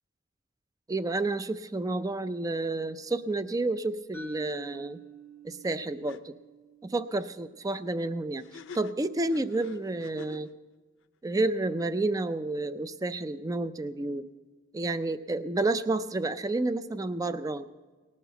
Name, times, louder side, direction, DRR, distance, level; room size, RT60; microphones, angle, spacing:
voice 1, 0.9-5.0 5.4-6.4 6.8-8.4 8.7-10.5 11.2-14.3 14.7-17.7, right 2 dB, 15° right, 12 dB, 0.3 m, -30 dB
sound 1, 4.1-8.2, right 6 dB, 85° right, 3.6 m, -50 dB
sound 2, 5.7-5.8 6.1-6.2 8.4-10.5, left 4 dB, 65° left, 0.6 m, -47 dB
19.0 x 6.5 x 7.9 m, 1.3 s
head